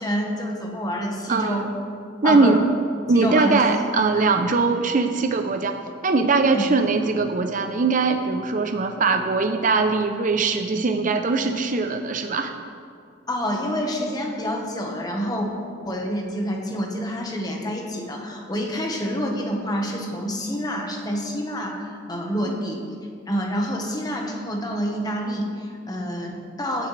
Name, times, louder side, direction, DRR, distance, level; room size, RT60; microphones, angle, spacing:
voice 1, 0.0-1.7 2.2-2.6 3.1-3.6 4.1-4.3 6.5-6.7 13.3-15.5 15.8-22.8 23.3-26.9, equal, 20° left, 1 dB, 1.3 m, -27 dB
voice 2, 1.3-1.6 2.2-2.6 3.1-5.8 6.0-12.5 22.4-22.6, right 3 dB, 40° right, 6 dB, 0.6 m, -21 dB
16.0 x 9.6 x 3.3 m, 2.3 s
head